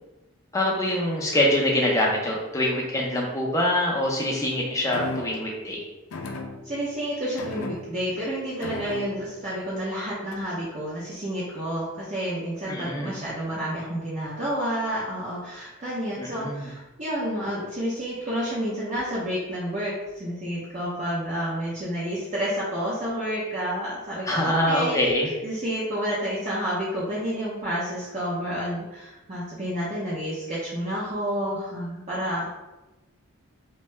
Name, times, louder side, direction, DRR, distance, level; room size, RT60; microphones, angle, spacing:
voice 1, 0.5-5.8 12.7-13.1 16.2-16.7 24.3-25.3, left 1 dB, 15° left, -2 dB, 0.5 m, -24 dB
sound 1, 4.9-5.5 6.1-6.9 7.4-8.2 8.6-9.4 10.3-10.6, left 2 dB, 75° left, 0.4 m, -36 dB
voice 2, 6.6-25.0 25.4-32.5, equal, 30° right, -8 dB, 0.5 m, -30 dB
2.6 x 2.2 x 3.1 m, 1.0 s
head